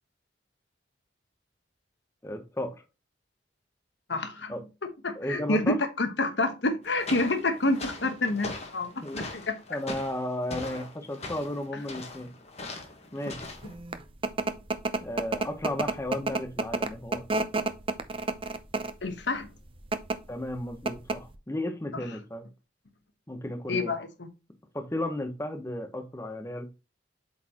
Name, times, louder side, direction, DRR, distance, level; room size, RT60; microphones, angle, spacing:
voice 1, 2.2-2.7 4.5-4.6 5.1-5.8 9.0-9.2 9.7-12.3 13.1-13.5 15.0-17.2 20.3-22.5 23.3-23.9 24.7-26.7, left 1 dB, 15° left, 0.9 m, -34 dB
voice 2, 4.1-4.5 5.0-9.8 19.0-19.5 23.7-24.3, left 2 dB, 80° left, 1.2 m, -28 dB
sound 1, 6.8-13.7, left 2 dB, 40° left, 1.4 m, -40 dB
sound 2, 13.6-19.1 19.8-20.2 20.5-20.6 20.9-21.3, right 3 dB, 30° right, 0.6 m, -29 dB
8.0 x 4.2 x 2.9 m
head